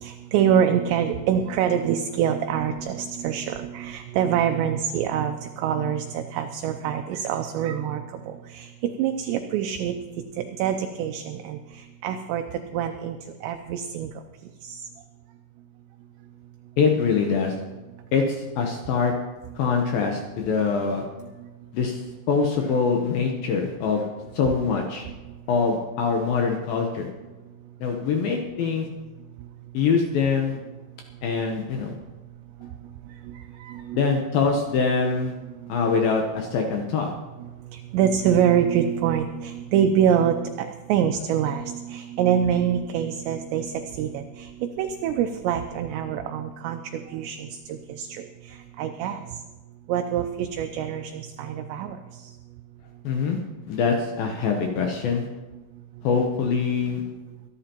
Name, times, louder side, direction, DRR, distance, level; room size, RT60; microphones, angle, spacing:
voice 1, 0.0-8.7 9.0-9.9 10.4-11.6 12.0-12.4 12.7-13.2 13.4-14.1 14.6-14.8 33.6-34.0 37.9-43.7 44.0-44.5 44.8-48.1 48.8-49.2 49.9-52.0, right 9 dB, 80° right, 6 dB, 2.6 m, -25 dB
voice 2, 16.8-17.6 18.1-19.1 19.6-21.0 21.7-24.1 24.3-25.1 25.5-27.1 27.8-28.9 29.7-30.6 31.2-31.9 33.9-35.3 35.7-37.1 53.0-53.4 53.7-55.3 56.0-57.0, left 5 dB, 75° left, 2 dB, 2.2 m, -24 dB
24.0 x 10.5 x 3.0 m, 1.2 s
omnidirectional pair, 5.4 m